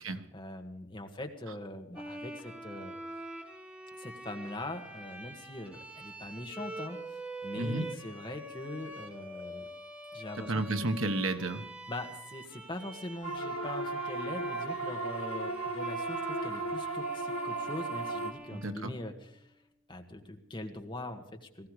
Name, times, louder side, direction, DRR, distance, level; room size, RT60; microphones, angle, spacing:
voice 1, 0.3-2.9 4.0-9.7 10.1-10.6 11.9-19.5 19.9-21.7, left 1 dB, 25° left, 4 dB, 1.7 m, -42 dB
Bowed string instrument, 2.0-19.4, right 1 dB, 5° right, 1.3 m, -45 dB
voice 2, 7.5-7.9 10.3-11.6 18.5-18.9, right 2 dB, 80° right, 8 dB, 1.4 m, -32 dB
sound 1, 13.2-18.3, right 3 dB, 90° left, 1.5 m, -35 dB
19.0 x 15.5 x 4.9 m, 0.76 s
head